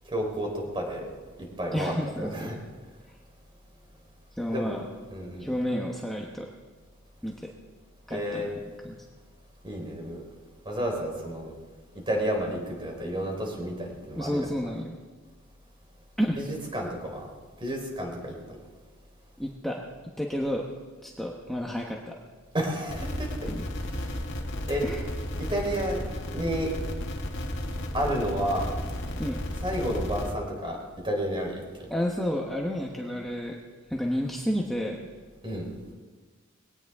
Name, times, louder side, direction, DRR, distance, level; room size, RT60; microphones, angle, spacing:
voice 1, 0.1-1.1 1.6-2.6 4.5-4.8 5.1-5.5 8.1-8.5 9.6-10.2 10.7-11.5 12.1-14.5 16.4-17.3 17.6-18.6 22.5-23.3 24.7-24.8 25.5-26.0 26.3-26.7 27.9-28.7 29.6-30.8 31.0-31.6 35.4-35.7, equal, 25° right, 0 dB, 4.0 m, -30 dB
voice 2, 1.7-2.5 4.4-4.9 5.4-6.5 7.2-7.5 8.1-8.5 8.8-9.0 14.2-15.0 16.2-16.4 19.4-19.8 20.2-20.6 21.0-22.1 23.5-23.7 24.8-25.0 29.2-29.4 31.9-33.6 33.9-35.0, equal, ahead, -2 dB, 1.1 m, -30 dB
sound 1, 22.9-30.3, left 1 dB, 65° left, 1.9 m, -33 dB
21.5 x 18.0 x 3.6 m, 1.4 s
head